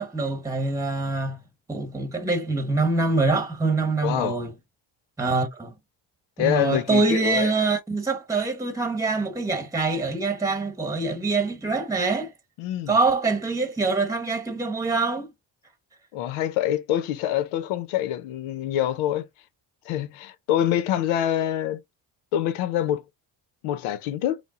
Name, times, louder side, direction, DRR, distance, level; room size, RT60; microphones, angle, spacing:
voice 1, 0.0-1.4 1.7-4.5 5.2-5.7 6.4-12.3 12.9-15.3, right 3 dB, 5° right, 1.0 m, -24 dB
voice 2, 4.0-4.4 6.4-7.5 12.6-13.0 16.1-19.3 19.8-21.8 22.3-23.0 23.6-24.4, left 11 dB, 85° left, 0.8 m, -25 dB
5.2 x 2.0 x 3.7 m
cardioid pair, 90°, 47 cm